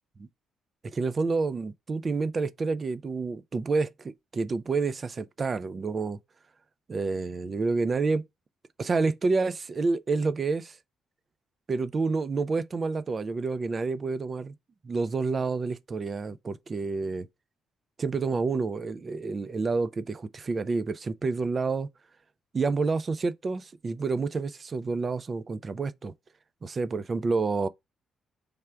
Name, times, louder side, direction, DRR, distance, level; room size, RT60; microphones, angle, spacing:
voice 1, 0.9-6.2 6.9-8.2 8.8-10.8 11.7-14.5 14.8-17.3 18.0-21.9 22.5-26.1 26.6-27.7, right 4 dB, 30° right, 0.3 m, -29 dB
3.4 x 2.4 x 4.3 m
cardioid pair, 125°, 0 cm